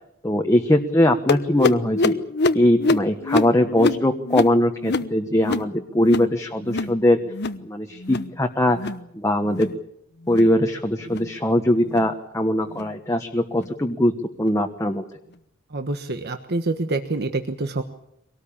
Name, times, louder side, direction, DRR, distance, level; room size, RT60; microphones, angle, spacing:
voice 1, 0.2-2.2 2.5-7.2 7.6-9.7 10.3-14.1 14.4-15.0, left 1 dB, 15° left, 3 dB, 1.3 m, -21 dB
sound 1, 1.3-6.3 6.6-7.0 7.3-7.6 8.0-8.3 8.7-9.0 9.4-9.8 10.2-10.5 11.0-11.3 11.9-12.1 12.7-12.9 13.6-13.7 14.4-14.5, left 3 dB, 55° left, 1.0 m, -25 dB
voice 2, 15.7-17.8, right 2 dB, 50° right, 7 dB, 1.3 m, -26 dB
24.0 x 18.5 x 8.7 m, 0.76 s
head